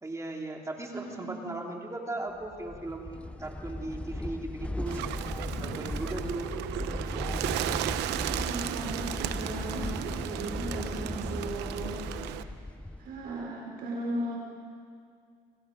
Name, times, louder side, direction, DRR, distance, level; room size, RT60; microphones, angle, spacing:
voice 1, 0.0-5.0 5.6-6.5 10.5-11.2, right 2 dB, 20° right, 1 dB, 2.9 m, -38 dB
voice 2, 0.9-1.4 8.1-12.5 13.0-14.4, right 1 dB, 65° right, -1 dB, 4.8 m, -37 dB
sound 1, 2.4-13.4, left 1 dB, 5° left, 0.8 m, -37 dB
Thunder, 4.6-9.9 10.1-10.2 10.5-10.6 10.9-11.0 11.5-11.9, left 3 dB, 90° left, 6.6 m, -50 dB
Bird, 4.9-12.4, right 13 dB, 90° right, 0.9 m, -35 dB
29.0 x 25.0 x 5.2 m, 2.2 s
cardioid pair, 110°, 17 cm